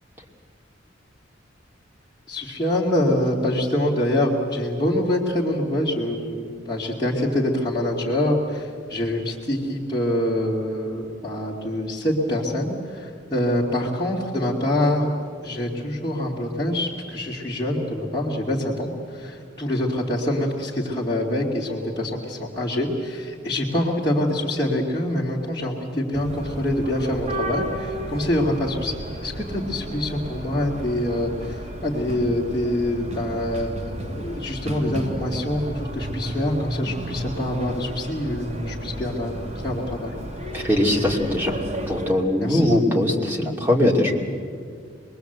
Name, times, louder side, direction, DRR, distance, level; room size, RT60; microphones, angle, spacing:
voice 1, 2.3-15.1 15.4-28.9 29.2-31.5 31.8-39.3 39.6-40.1 42.4-42.7, left 1 dB, 25° left, -6 dB, 2.5 m, -25 dB
sound 1, 26.1-42.1, right 1 dB, 35° right, 2.9 m, -33 dB
voice 2, 40.5-41.6 41.9-44.1, left 1 dB, 10° right, -2 dB, 2.7 m, -21 dB
26.0 x 21.0 x 8.0 m, 2.2 s
head